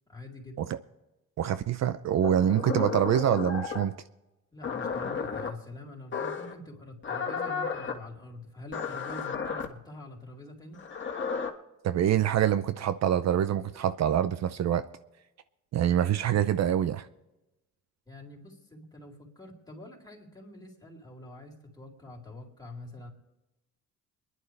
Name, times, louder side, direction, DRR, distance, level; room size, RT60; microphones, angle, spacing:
voice 1, 0.1-0.6 4.5-10.8 18.1-23.1, left 1 dB, 15° left, -2 dB, 4.0 m, -46 dB
voice 2, 1.4-3.9 11.8-14.8 15.7-17.1, right 10 dB, 60° right, 13 dB, 0.6 m, -25 dB
sound 1, 2.2-3.9 4.6-5.5 6.1-6.5 7.0-8.0 8.7-9.7 10.7-11.5, left 5 dB, 40° left, 1.8 m, -33 dB
29.0 x 11.0 x 3.3 m, 1.0 s
cardioid pair, 90°, 30 cm